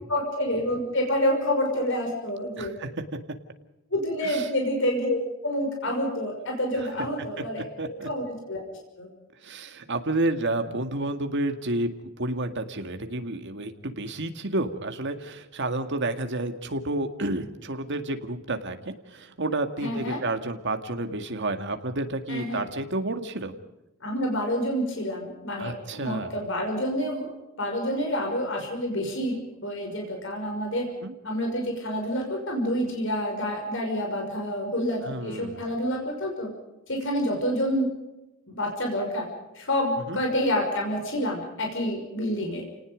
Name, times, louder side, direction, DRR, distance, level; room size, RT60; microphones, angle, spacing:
voice 1, 0.1-2.7 3.9-8.6 9.0-9.1 19.8-20.2 22.3-22.7 24.0-27.3 27.6-30.9 31.2-36.5 36.9-37.9 38.5-39.3 39.5-42.6, equal, 65° left, 2 dB, 5.8 m, -28 dB
voice 2, 2.6-2.9 4.2-4.5 7.8-8.1 9.4-11.9 12.2-23.5 25.6-26.3 31.0-31.1 35.0-35.6 40.1-40.2, right 2 dB, 60° right, 6 dB, 2.1 m, -30 dB
29.5 x 19.0 x 5.2 m, 0.98 s
head